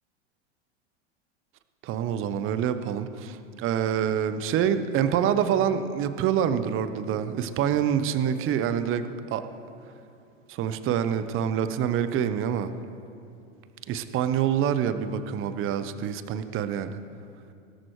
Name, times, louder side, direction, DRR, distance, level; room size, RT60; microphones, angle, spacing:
voice 1, 1.8-9.5 10.5-12.7 13.9-17.0, right 9 dB, 40° right, 11 dB, 0.8 m, -26 dB
17.0 x 13.0 x 3.2 m, 2.5 s
hypercardioid pair, 95°, 34 cm